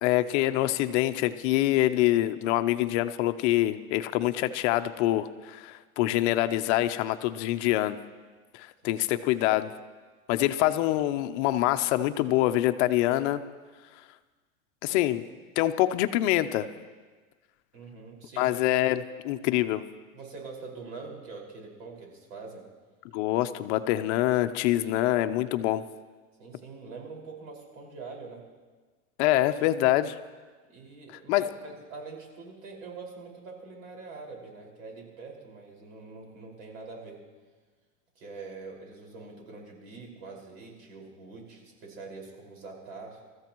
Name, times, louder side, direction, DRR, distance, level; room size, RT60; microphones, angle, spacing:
voice 1, 0.0-8.0 8.5-9.7 10.3-13.4 14.8-15.2 15.6-16.7 18.4-19.8 23.1-25.8 29.2-30.2 31.3-31.4, left 14 dB, 55° left, 10 dB, 0.8 m, -25 dB
voice 2, 17.7-18.6 20.1-22.6 26.4-28.4 30.7-37.2 38.2-43.2, right 4 dB, 60° right, -1 dB, 5.4 m, -44 dB
28.0 x 14.0 x 3.1 m, 1.4 s
supercardioid pair, 140°, 42 cm